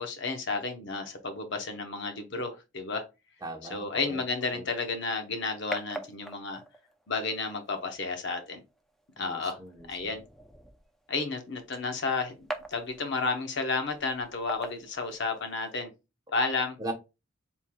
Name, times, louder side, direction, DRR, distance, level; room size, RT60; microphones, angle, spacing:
voice 1, 0.0-3.0 3.7-6.6 7.1-8.6 9.2-9.6 9.9-10.2 11.1-15.9 16.3-16.8, left 4 dB, 60° left, 0.8 m, -32 dB
voice 2, 3.4-4.2 4.5-4.6 9.2-10.1 16.8-16.9, right 2 dB, 20° right, 0.9 m, -39 dB
sound 1, 4.7-15.7, right 1 dB, ahead, 0.4 m, -46 dB
4.4 x 3.6 x 2.2 m
head